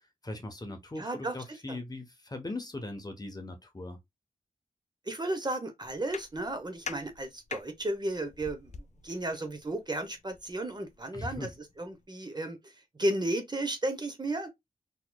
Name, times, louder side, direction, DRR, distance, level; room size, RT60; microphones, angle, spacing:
voice 1, 0.2-4.0 11.1-11.5, left 2 dB, 25° left, 0.8 m, -39 dB
voice 2, 1.0-1.4 1.7-1.8 5.1-11.5 11.8-12.7 13.0-14.5, right 1 dB, 30° right, 0.8 m, -34 dB
sound 1, 5.9-12.0, left 5 dB, 55° left, 0.4 m, -47 dB
4.0 x 2.9 x 2.2 m
wide cardioid pair, 95°, 15 cm